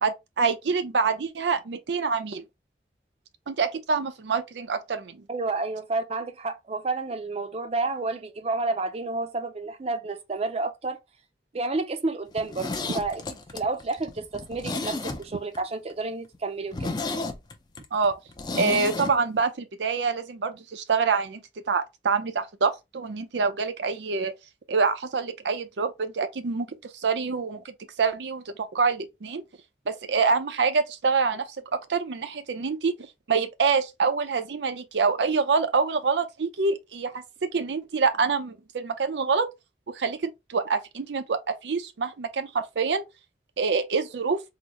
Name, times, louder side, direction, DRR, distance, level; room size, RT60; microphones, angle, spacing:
voice 1, 0.0-2.4 3.5-5.2 17.9-18.2 18.5-24.4 24.7-26.7 26.9-29.4 29.9-32.9 33.3-39.5 39.9-43.0 43.6-44.4, right 5 dB, 80° right, 0.5 m, -26 dB
voice 2, 5.3-11.0 11.5-16.9, right 3 dB, 35° right, 0.5 m, -30 dB
Zipper (clothing), 12.3-15.6 15.9-16.0 16.3-16.4 16.7-19.1 19.4-19.5, left 3 dB, 25° left, 0.4 m, -32 dB
3.9 x 2.0 x 2.9 m
head